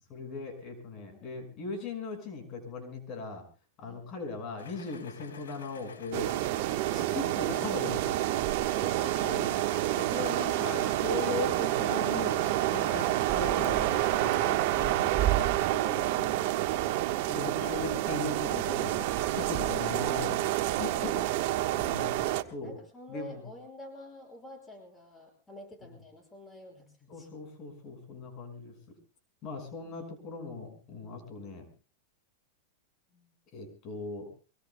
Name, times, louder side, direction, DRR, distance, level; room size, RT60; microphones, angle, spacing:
voice 1, 0.1-3.4 3.8-6.3 6.9-8.2 9.2-9.5 10.0-12.4 12.7-15.5 16.2-16.4 16.7-16.8 17.3-21.2 21.7-22.3 22.5-22.8 23.1-23.5 25.8-25.9 27.1-28.7 29.4-31.7 33.5-34.3, left 4 dB, 40° left, 4 dB, 5.7 m, -39 dB
voice 2, 1.1-1.4 3.8-4.0 8.8-9.3 10.3-10.4 15.7-16.5 19.1-19.2 21.1-21.9 22.6-27.3 29.8-30.0 33.1-33.3, left 1 dB, 15° left, 3 dB, 6.0 m, -48 dB
sound 1, 4.6-14.5, left 5 dB, 90° left, 4.8 m, -48 dB
sound 2, 6.1-22.4, right 15 dB, 60° right, 1.3 m, -29 dB
sound 3, 13.3-19.3, right 12 dB, 30° right, 6.2 m, -36 dB
24.5 x 22.5 x 2.2 m, 0.35 s
hypercardioid pair, 115°, 0 cm